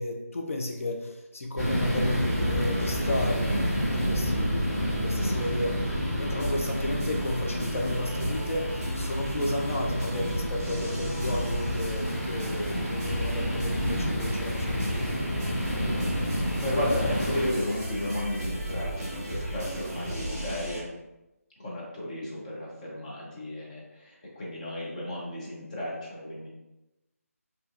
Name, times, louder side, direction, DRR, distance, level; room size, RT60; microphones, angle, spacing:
voice 1, 0.0-15.1, left 1 dB, 60° left, 1 dB, 0.8 m, -33 dB
sound 1, 1.6-17.5, equal, ahead, 0.7 m, -30 dB
sound 2, 1.6-20.8, equal, 15° right, 1.1 m, -35 dB
voice 2, 16.6-20.9 21.6-26.5, left 1 dB, 30° left, -5 dB, 0.9 m, -33 dB
4.8 x 2.7 x 2.6 m, 0.99 s
figure-of-eight pair, 160°, 8 cm